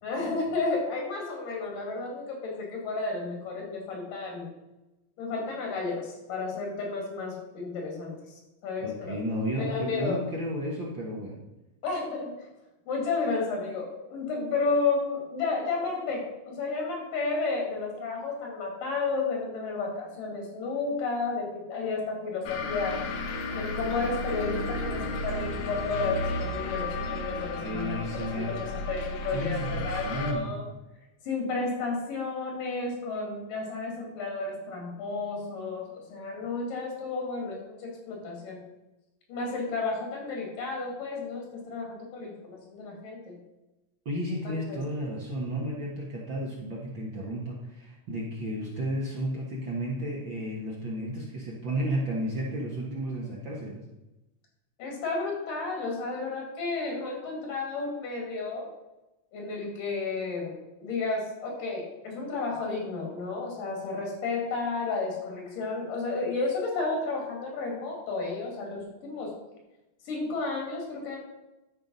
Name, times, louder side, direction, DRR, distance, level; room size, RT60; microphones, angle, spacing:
voice 1, 0.0-4.5 5.2-9.2 9.6-10.2 11.8-12.3 12.9-23.0 23.5-30.6 31.2-38.6 39.3-43.4 44.3-44.8 54.8-58.7 59.3-69.4 70.1-71.2, left 3 dB, 90° left, 0 dB, 4.0 m, -32 dB
voice 2, 8.8-11.4 27.6-28.6 29.3-30.5 44.0-53.8, equal, 50° right, -3 dB, 1.6 m, -33 dB
sound 1, 22.4-30.3, left 2 dB, 70° left, 2.1 m, -33 dB
12.0 x 4.7 x 5.3 m, 1.0 s
omnidirectional pair, 3.7 m